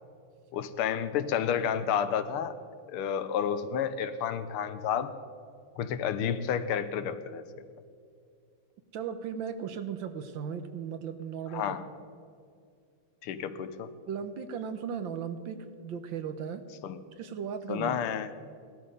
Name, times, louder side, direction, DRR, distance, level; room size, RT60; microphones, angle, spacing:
voice 1, 0.5-2.6 2.9-5.1 5.8-7.4 11.5-11.9 13.2-13.9 16.8-17.0 17.7-18.3, left 8 dB, 90° left, 11 dB, 1.7 m, -30 dB
voice 2, 8.9-11.8 14.1-16.6 17.2-18.0, right 7 dB, 65° right, 10 dB, 1.5 m, -36 dB
17.5 x 12.5 x 5.3 m, 2.3 s
omnidirectional pair, 2.4 m